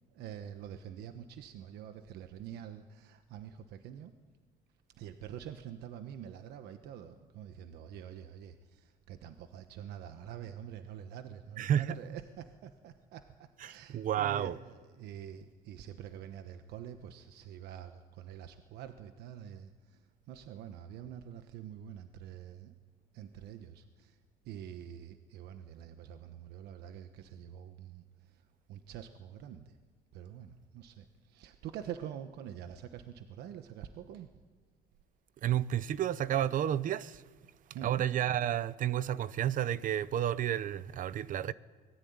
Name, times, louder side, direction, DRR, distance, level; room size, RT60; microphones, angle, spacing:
voice 1, 0.1-4.1 4.9-22.7 23.1-29.8 30.1-34.3 37.7-38.0, right 9 dB, 80° right, 1.2 m, -46 dB
voice 2, 11.6-12.0 13.9-14.5 35.4-37.2 37.8-41.5, right 10 dB, 55° right, 0.8 m, -31 dB
24.0 x 20.0 x 9.6 m
cardioid pair, 135°, 17 cm